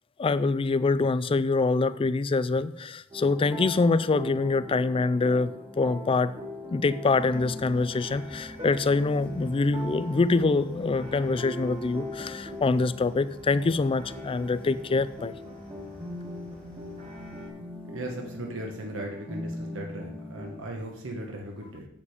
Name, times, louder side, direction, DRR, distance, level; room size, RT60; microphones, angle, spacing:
voice 1, 0.2-6.3 6.7-15.3, left 3 dB, 25° left, 15 dB, 0.3 m, -25 dB
sound 1, 3.1-20.6, left 1 dB, 20° right, 1.5 m, -41 dB
sound 2, 7.0-17.5, equal, 40° right, 3.1 m, -49 dB
voice 2, 17.8-21.9, right 1 dB, 65° right, 1 dB, 1.2 m, -37 dB
8.3 x 7.4 x 5.0 m, 0.80 s
head